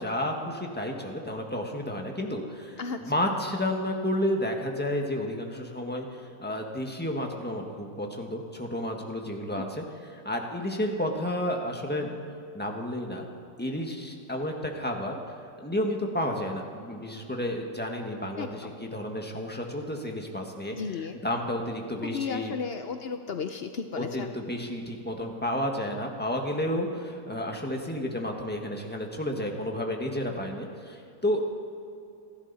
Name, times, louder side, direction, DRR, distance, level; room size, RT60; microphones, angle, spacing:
voice 1, 0.0-12.1 12.5-13.2 13.6-15.2 15.6-20.8 21.2-22.5 23.9-31.4, left 1 dB, 5° left, 1 dB, 1.5 m, -31 dB
voice 2, 2.8-3.1 9.3-9.7 18.4-18.8 20.7-21.2 22.0-24.3, left 5 dB, 75° left, 7 dB, 0.5 m, -35 dB
29.5 x 11.5 x 4.2 m, 2.6 s
omnidirectional pair, 1.9 m